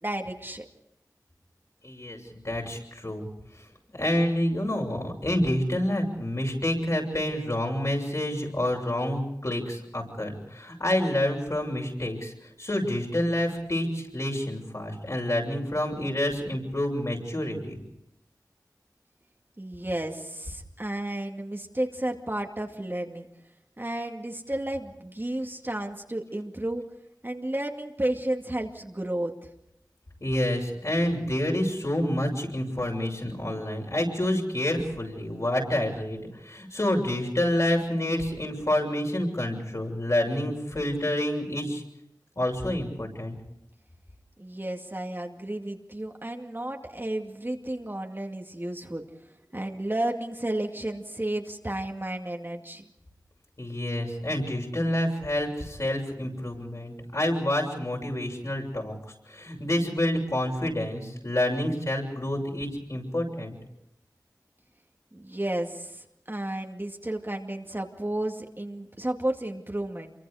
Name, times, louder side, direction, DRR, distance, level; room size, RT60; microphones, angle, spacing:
voice 1, 0.0-0.6 19.6-23.3 23.8-26.8 27.2-29.3 44.4-49.0 49.5-52.8 65.1-70.1, right 1 dB, 30° right, 2 dB, 2.4 m, -32 dB
voice 2, 1.8-3.3 3.5-3.6 3.9-17.8 30.2-41.8 42.4-43.4 53.6-58.9 59.3-63.6, left 1 dB, 50° left, 0 dB, 7.0 m, -28 dB
27.5 x 24.0 x 5.1 m, 0.81 s
wide cardioid pair, 45°, 7 cm